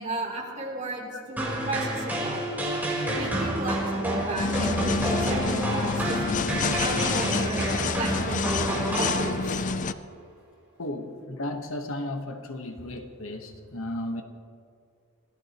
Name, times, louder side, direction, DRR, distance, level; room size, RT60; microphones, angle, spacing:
voice 1, 0.0-2.5 3.0-6.4 6.8-9.6, right 2 dB, 35° right, -2 dB, 3.2 m, -34 dB
sound 1, 1.4-9.7, right 1 dB, 10° right, 4.0 m, -29 dB
sound 2, 4.4-9.9, left 5 dB, 35° left, 0.4 m, -28 dB
voice 2, 10.8-14.2, left 1 dB, 70° left, 5 dB, 1.3 m, -34 dB
25.5 x 18.0 x 3.0 m, 2.3 s
head